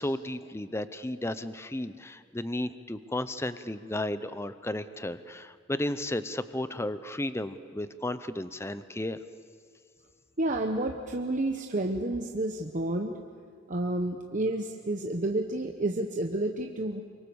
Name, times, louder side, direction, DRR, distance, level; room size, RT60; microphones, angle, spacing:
voice 1, 0.0-9.2, left 1 dB, 15° left, 12 dB, 0.7 m, -33 dB
voice 2, 10.4-13.2 13.7-17.0, right 1 dB, 40° right, 3 dB, 1.0 m, -30 dB
24.5 x 23.5 x 7.1 m, 2.2 s
head